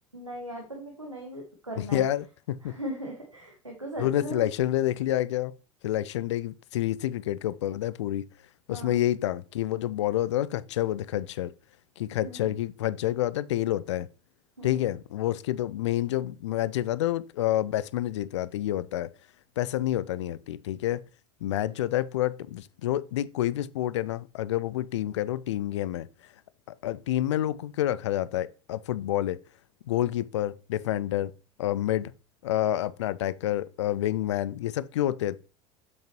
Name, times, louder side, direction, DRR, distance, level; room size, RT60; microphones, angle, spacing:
voice 1, 0.1-2.0 2.6-4.5 8.7-9.0 12.2-12.5 14.6-14.9, right 1 dB, 90° right, 1.2 m, -38 dB
voice 2, 1.8-2.7 4.0-5.5 5.8-8.3 8.7-11.5 12.0-14.1 14.6-19.1 19.6-21.0 21.4-26.1 26.7-29.4 29.9-31.3 31.6-32.1 32.4-35.5, left 13 dB, 65° left, 0.4 m, -28 dB
7.3 x 6.4 x 3.0 m
figure-of-eight pair, 70°, 16 cm